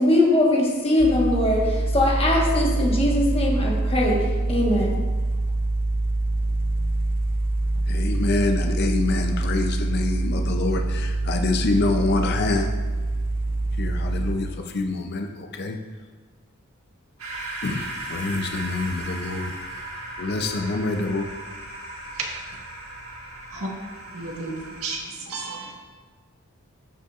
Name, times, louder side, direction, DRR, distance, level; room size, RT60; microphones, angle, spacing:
voice 1, 0.0-4.1 4.5-4.9, left 1 dB, 25° left, -3 dB, 1.3 m, -21 dB
sound 1, 1.0-14.4, right 2 dB, 40° right, 0.6 m, -25 dB
voice 2, 7.9-12.7 13.8-14.5 14.7-15.8 17.6-19.5 20.2-21.3, left 3 dB, 50° left, 4 dB, 0.5 m, -26 dB
sound 2, 17.2-25.0, right 1 dB, 75° right, 1.7 m, -37 dB
voice 3, 24.1-25.7, right 3 dB, 90° right, -1 dB, 1.5 m, -32 dB
14.0 x 5.6 x 2.4 m, 1.4 s
head